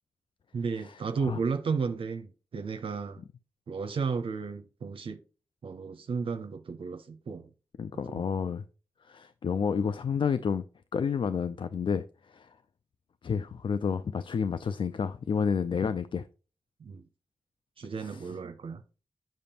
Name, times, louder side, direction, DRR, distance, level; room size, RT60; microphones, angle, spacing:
voice 1, 0.5-3.2 3.7-5.2 5.6-7.5 7.9-8.2 16.8-17.0 17.8-18.8, right 5 dB, 70° right, 0.5 m, -33 dB
voice 2, 7.8-8.6 9.0-10.6 10.9-12.5 13.2-16.3 18.0-18.3, left 6 dB, 60° left, 0.4 m, -30 dB
7.6 x 5.2 x 2.8 m
cardioid pair, 45°, 9 cm